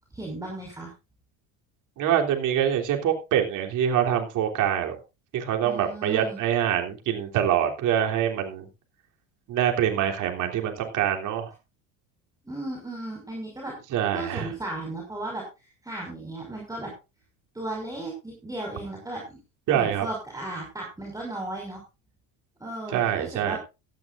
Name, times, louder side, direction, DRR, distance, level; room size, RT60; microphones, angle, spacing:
voice 1, 0.1-0.9 5.6-6.4 12.4-13.7 14.1-15.4 15.8-16.9 17.5-19.4 19.7-21.8 22.6-23.6, right 2 dB, 10° right, -1 dB, 5.7 m, -35 dB
voice 2, 2.0-5.0 5.3-8.7 9.5-11.5 13.9-14.5 19.7-20.1 22.9-23.6, right 10 dB, 55° right, 2 dB, 3.4 m, -25 dB
17.0 x 13.0 x 2.6 m, 0.28 s
supercardioid pair, 115°, 38 cm